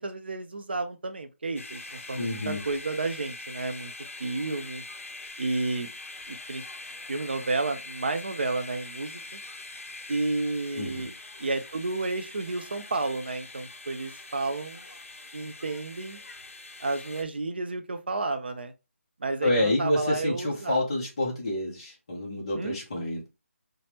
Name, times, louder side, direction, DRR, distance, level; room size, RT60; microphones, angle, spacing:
voice 1, 0.0-3.9 4.2-4.8 5.4-5.9 6.3-6.6 7.1-9.4 10.1-11.1 11.4-14.8 15.3-16.2 16.8-18.7 19.2-20.8 22.6-22.8, right 3 dB, 45° right, 0.5 m, -31 dB
sound 1, 1.6-17.2, left 2 dB, 65° left, 0.6 m, -43 dB
voice 2, 2.1-2.6 10.7-11.1 19.4-23.3, left 1 dB, 25° left, 0.6 m, -28 dB
3.3 x 2.0 x 2.8 m
figure-of-eight pair, 175°, 8 cm